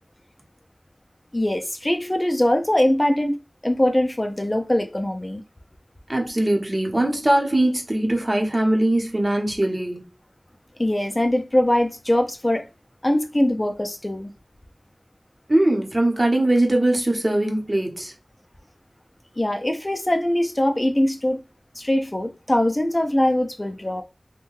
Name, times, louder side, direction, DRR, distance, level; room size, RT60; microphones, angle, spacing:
voice 1, 1.3-3.4 3.6-5.4 10.8-12.7 13.0-14.3 19.4-21.4 21.8-24.0, left 1 dB, 35° left, 0.4 m, -22 dB
voice 2, 6.1-10.1 15.5-18.1, right 1 dB, 40° right, 0.8 m, -21 dB
2.7 x 2.1 x 3.1 m
wide cardioid pair, 40°, 0 cm